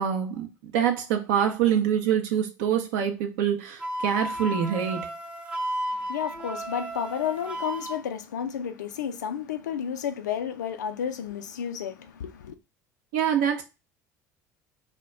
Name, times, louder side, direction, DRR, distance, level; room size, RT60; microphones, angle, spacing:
voice 1, 0.0-5.1 13.1-13.6, right 9 dB, 65° right, 0.5 m, -25 dB
Wind instrument woodwind instrument, 3.8-8.0, right 1 dB, 10° right, 0.6 m, -33 dB
voice 2, 5.9-12.6, left 8 dB, 80° left, 0.4 m, -32 dB
2.2 x 2.1 x 3.7 m
figure-of-eight pair, 65°, 10 cm